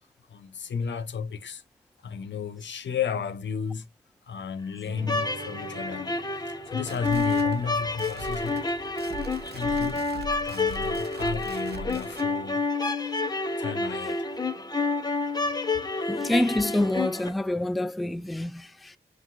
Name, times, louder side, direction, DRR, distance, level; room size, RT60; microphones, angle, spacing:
voice 1, 0.3-1.6 2.0-3.8 4.3-8.8 9.5-10.1 10.4-12.6 13.6-14.3 15.4-15.5, left 6 dB, 80° left, 1.0 m, -33 dB
Guitar, 4.9-9.9, right 4 dB, 40° right, 1.3 m, -47 dB
sound 1, 5.0-17.3, left 3 dB, 20° left, 1.1 m, -29 dB
sound 2, 6.7-12.3, right 2 dB, 60° right, 0.9 m, -41 dB
voice 2, 16.1-19.0, left 1 dB, ahead, 0.4 m, -27 dB
6.0 x 2.6 x 2.6 m
cardioid pair, 60°, 18 cm